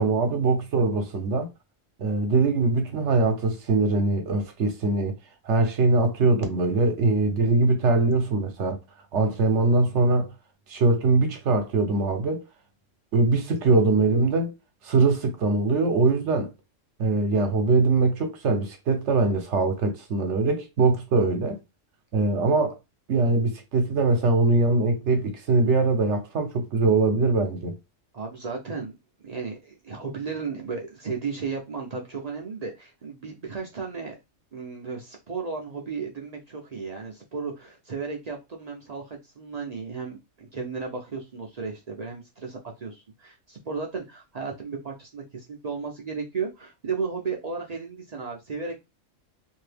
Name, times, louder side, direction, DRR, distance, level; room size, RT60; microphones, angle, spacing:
voice 1, 0.0-1.5 2.0-5.2 5.5-8.8 9.1-10.3 10.7-12.4 13.1-14.5 14.8-16.5 17.0-21.6 22.1-22.8 23.1-27.8, right 3 dB, 65° right, 1.0 m, -22 dB
voice 2, 28.1-28.9 29.2-34.2 34.5-48.8, right 5 dB, 50° right, 0.5 m, -34 dB
2.7 x 2.6 x 3.3 m
omnidirectional pair, 1.3 m